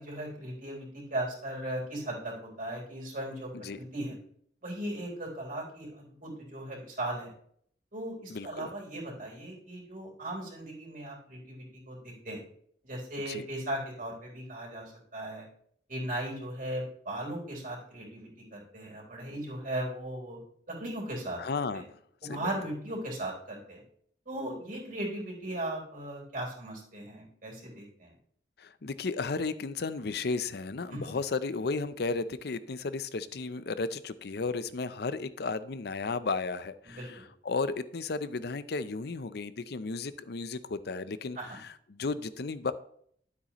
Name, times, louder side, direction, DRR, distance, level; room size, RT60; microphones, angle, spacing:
voice 1, 0.0-4.2 4.6-7.3 7.9-12.4 12.8-15.5 15.9-20.4 20.7-21.4 22.2-23.8 24.3-28.1 30.9-31.2 36.9-37.2 41.4-41.6, right 1 dB, 50° right, -2 dB, 4.0 m, -37 dB
voice 2, 8.3-8.7 13.3-13.5 21.4-22.0 22.2-22.5 28.6-42.7, left 4 dB, 60° left, 14 dB, 0.6 m, -34 dB
12.5 x 8.3 x 3.0 m, 0.64 s
head